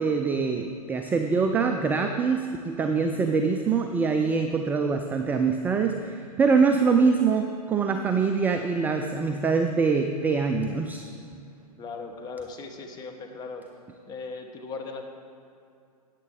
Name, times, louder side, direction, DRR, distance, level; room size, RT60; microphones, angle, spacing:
voice 1, 0.0-11.1, right 5 dB, 10° right, 5 dB, 0.3 m, -24 dB
voice 2, 11.8-13.7 14.1-15.0, left 4 dB, 20° left, 4 dB, 1.2 m, -38 dB
14.0 x 9.0 x 3.8 m, 2.5 s
figure-of-eight pair, 115°, 20 cm